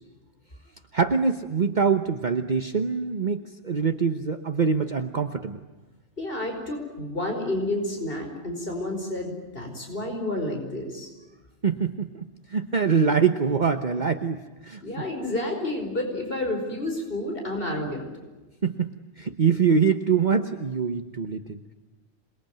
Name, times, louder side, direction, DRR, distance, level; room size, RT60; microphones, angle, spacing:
voice 1, 0.9-5.6 11.6-12.2 12.5-14.4 14.6-15.1 18.6-21.7, right 6 dB, 40° right, 7 dB, 1.2 m, -24 dB
voice 2, 6.2-11.1 14.8-18.1, left 1 dB, 55° left, 3 dB, 5.3 m, -30 dB
27.5 x 22.0 x 9.1 m, 1.2 s
omnidirectional pair, 1.2 m